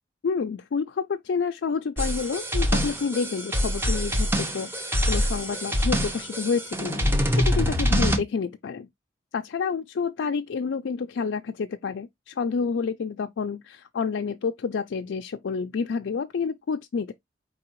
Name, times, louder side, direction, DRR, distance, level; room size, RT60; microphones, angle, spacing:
voice 1, 0.2-8.9 9.3-17.1, left 5 dB, 85° left, 0.4 m, -29 dB
sound 1, 2.0-8.2, equal, 15° right, 0.9 m, -25 dB
4.7 x 3.3 x 2.9 m
head